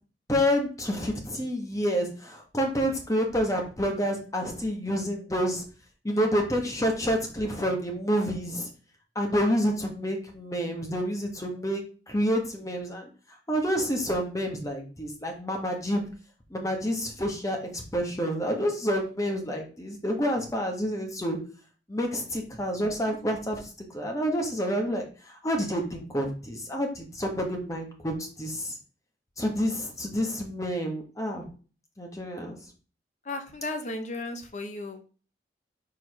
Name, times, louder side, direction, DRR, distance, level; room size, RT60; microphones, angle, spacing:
voice 1, 0.3-5.6 6.0-8.7 9.1-13.1 13.5-16.0 16.5-21.4 21.9-28.8 29.4-31.4 32.0-32.6, equal, 20° left, 2 dB, 1.4 m, -28 dB
voice 2, 33.3-35.1, left 2 dB, 40° left, 6 dB, 0.8 m, -35 dB
4.9 x 4.2 x 5.5 m, 0.38 s
head